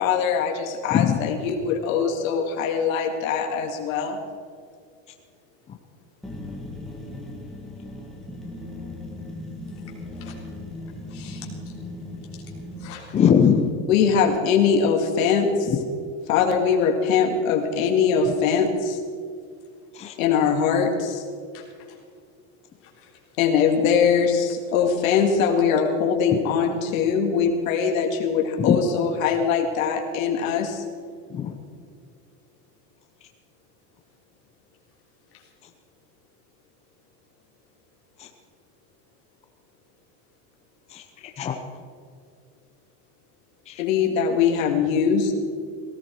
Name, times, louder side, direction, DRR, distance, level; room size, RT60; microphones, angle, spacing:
voice 1, 0.0-4.2 13.9-15.7 16.3-19.0 20.2-21.2 23.4-30.8 43.8-45.3, left 6 dB, 85° left, 2.4 m, -22 dB
voice 2, 5.2-5.6 6.2-6.3 8.2-8.3 9.6-10.5 10.8-11.8 12.3-12.4 12.8-13.2 14.2-14.3 19.6-19.9 21.5-22.2 22.8-23.4 35.3-35.5, left 8 dB, 35° left, 3.5 m, -48 dB
sound 1, 6.2-13.0, left 1 dB, ahead, 2.1 m, -37 dB
voice 3, 13.1-13.7 15.7-15.8 19.9-20.1 28.6-28.8 31.3-31.5 38.2-38.3 40.9-41.6 43.7-43.8, left 8 dB, 15° left, 0.6 m, -21 dB
18.0 x 16.0 x 4.6 m
supercardioid pair, 165°, 39 cm